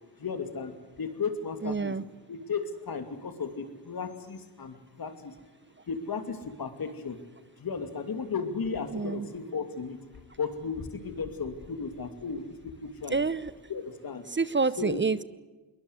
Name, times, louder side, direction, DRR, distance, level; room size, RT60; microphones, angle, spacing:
voice 1, 0.2-0.7 1.0-1.9 2.3-5.3 5.9-7.2 7.6-10.0 10.4-13.2 13.7-14.2 14.8-15.0, left 5 dB, 65° left, 8 dB, 2.7 m, -35 dB
voice 2, 1.6-2.0 8.9-9.3 13.1-13.5 14.3-15.2, right 4 dB, 30° right, 17 dB, 0.8 m, -28 dB
22.0 x 20.5 x 8.1 m, 1.2 s
cardioid pair, 65°, 38 cm